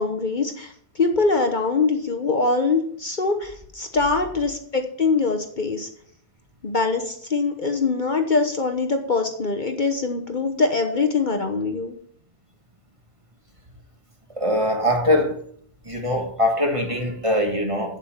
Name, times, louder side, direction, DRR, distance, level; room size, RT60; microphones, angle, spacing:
voice 1, 0.0-5.9 6.6-12.0, left 4 dB, 45° left, 5 dB, 1.1 m, -23 dB
voice 2, 14.4-15.4 15.8-18.0, left 1 dB, 30° right, 2 dB, 1.8 m, -22 dB
8.1 x 7.9 x 7.2 m, 0.62 s
omnidirectional pair, 1.2 m